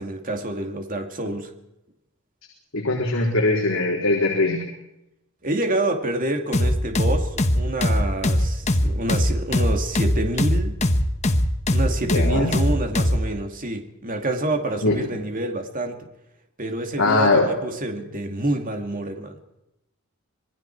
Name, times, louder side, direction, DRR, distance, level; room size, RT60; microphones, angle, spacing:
voice 1, 0.0-1.5 5.4-10.8 11.7-16.1 16.6-19.4, right 1 dB, 40° right, 4 dB, 2.4 m, -27 dB
voice 2, 2.7-4.6 12.0-12.5 14.8-15.0 17.0-17.5, left 2 dB, 60° left, -1 dB, 4.1 m, -21 dB
sound 1, 6.5-13.2, left 1 dB, 30° left, 1.4 m, -20 dB
26.5 x 21.0 x 4.7 m, 0.87 s
head